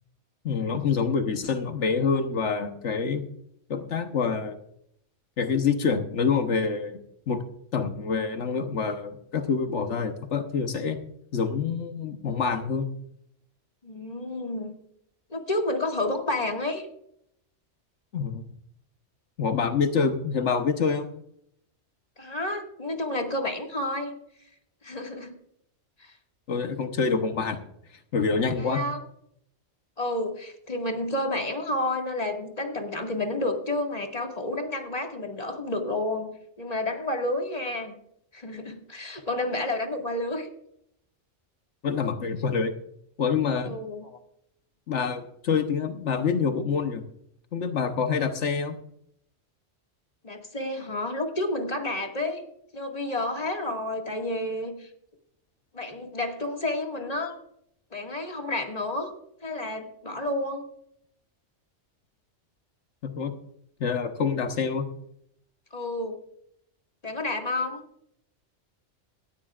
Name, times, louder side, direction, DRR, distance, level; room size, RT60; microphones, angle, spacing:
voice 1, 0.4-3.2 3.7-4.6 5.4-7.0 7.3-7.4 7.7-11.0 11.3-12.9 18.1-18.4 19.4-21.1 26.5-27.6 28.1-28.8 41.8-42.7 43.2-43.8 44.9-47.0 47.5-48.7 63.0-63.3 63.8-64.9, left 5 dB, 80° left, 6 dB, 1.4 m, -26 dB
voice 2, 13.8-14.7 15.3-16.9 22.2-24.1 24.8-25.4 26.0-26.2 28.6-29.0 30.0-36.3 36.6-37.9 38.3-40.5 43.6-44.2 50.2-52.4 52.7-54.9 55.7-57.4 57.9-59.1 59.4-60.6 65.7-66.2 67.0-67.8, left 2 dB, 35° left, 2 dB, 2.1 m, -30 dB
17.5 x 14.5 x 2.5 m, 0.72 s
omnidirectional pair, 1.2 m